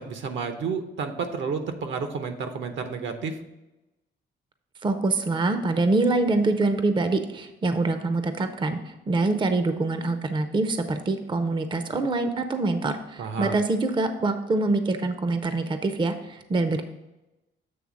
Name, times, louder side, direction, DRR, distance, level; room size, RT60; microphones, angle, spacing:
voice 1, 0.1-3.4 13.2-13.6, right 5 dB, 70° right, 7 dB, 0.9 m, -31 dB
voice 2, 4.8-16.8, right 2 dB, 25° right, 8 dB, 0.6 m, -25 dB
7.7 x 3.2 x 6.2 m, 1.0 s
cardioid pair, 90°, 20 cm